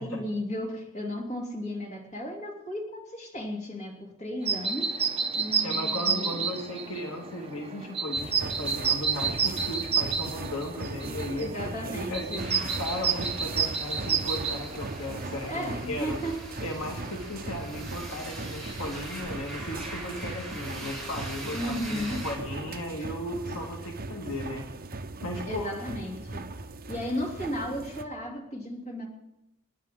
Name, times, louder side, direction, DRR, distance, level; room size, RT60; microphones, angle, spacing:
voice 1, 0.0-4.9 5.4-6.5 11.4-12.5 15.5-16.4 21.5-22.3 25.5-26.4 26.9-29.1, equal, 30° left, -1 dB, 3.0 m, -34 dB
sound 1, 4.4-15.9, right 6 dB, 25° right, 1.1 m, -30 dB
voice 2, 5.6-16.2 16.6-24.6 25.2-25.7, left 1 dB, 65° left, 1 dB, 1.9 m, -36 dB
sound 2, 8.1-28.0, right 3 dB, 40° right, 0.8 m, -39 dB
sound 3, 12.3-22.3, right 1 dB, ahead, 4.7 m, -42 dB
29.0 x 10.5 x 3.8 m, 0.88 s
head